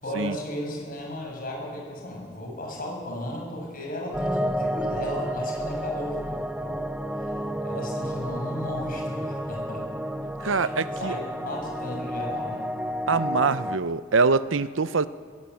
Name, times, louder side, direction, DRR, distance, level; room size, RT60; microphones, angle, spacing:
voice 1, 0.0-6.8 7.2-7.3 7.6-9.8 10.4-10.7 11.0-12.7, left 1 dB, 50° left, 7.3 m, -35 dB
sound 1, 4.1-13.8, equal, 5° right, 0.8 m, -31 dB
voice 2, 10.4-11.1 13.1-15.1, right 4 dB, 80° right, 0.7 m, -24 dB
22.0 x 16.0 x 8.5 m
head